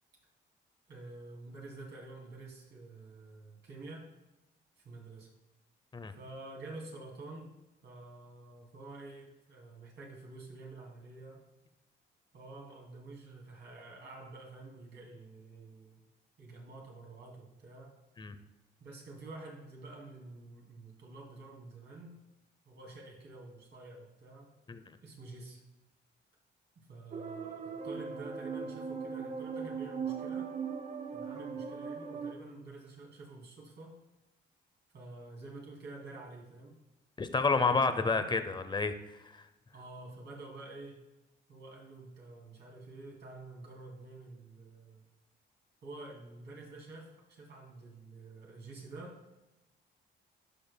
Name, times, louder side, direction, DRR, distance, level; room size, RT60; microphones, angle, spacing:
voice 1, 0.9-4.1 4.8-5.3 6.2-7.5 7.8-11.4 12.3-16.0 16.4-18.0 18.8-22.2 22.7-24.5 25.0-25.6 26.8-30.5 31.1-34.0 34.9-36.8 37.8-38.3 39.7-41.0 41.5-45.0 45.8-49.2, right 2 dB, 65° right, -1 dB, 2.6 m, -49 dB
sound 1, 27.1-32.3, right 6 dB, 35° right, 0.6 m, -39 dB
voice 2, 37.2-38.9, left 4 dB, 25° left, 10 dB, 0.7 m, -29 dB
12.0 x 5.3 x 2.2 m, 0.99 s
cardioid pair, 90°, 20 cm